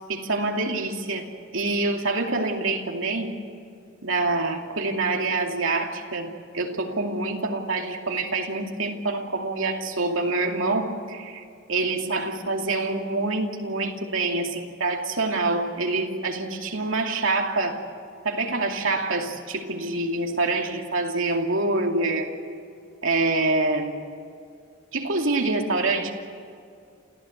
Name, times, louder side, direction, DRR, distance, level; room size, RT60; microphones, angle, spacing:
voice 1, 0.0-3.4 4.0-11.4 11.7-17.8 18.2-22.3 23.0-24.1 24.9-26.1, right 3 dB, 80° right, 2 dB, 2.6 m, -26 dB
28.5 x 15.0 x 8.1 m, 2.3 s
head